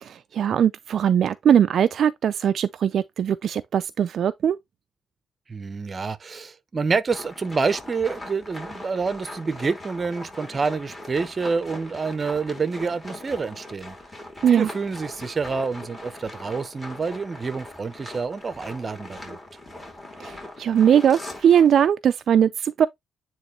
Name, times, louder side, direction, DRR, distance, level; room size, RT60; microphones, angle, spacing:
voice 1, 0.0-4.6 14.4-14.7 20.2-22.9, right 9 dB, 60° right, 0.4 m, -20 dB
voice 2, 5.5-14.0 14.5-19.4, right 4 dB, 35° right, 0.8 m, -28 dB
sound 1, 7.1-21.9, left 1 dB, 15° left, 3.3 m, -40 dB
9.3 x 3.1 x 3.2 m
cardioid pair, 90°, 0 cm